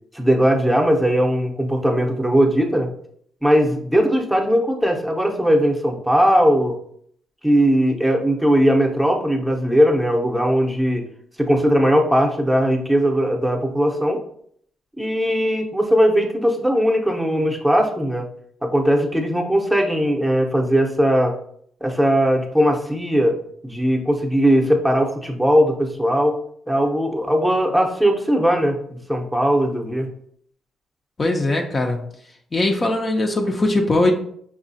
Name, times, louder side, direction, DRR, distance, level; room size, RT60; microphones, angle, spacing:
voice 1, 0.1-2.9 3.4-6.8 7.4-11.0 11.4-14.2 15.0-18.3 18.6-21.3 21.8-26.4 26.7-30.1, equal, 5° right, 1 dB, 0.7 m, -19 dB
voice 2, 31.2-32.0 32.5-34.1, left 2 dB, 30° left, 2 dB, 0.5 m, -20 dB
6.2 x 2.3 x 2.6 m, 0.65 s
cardioid pair, 90°, 0 cm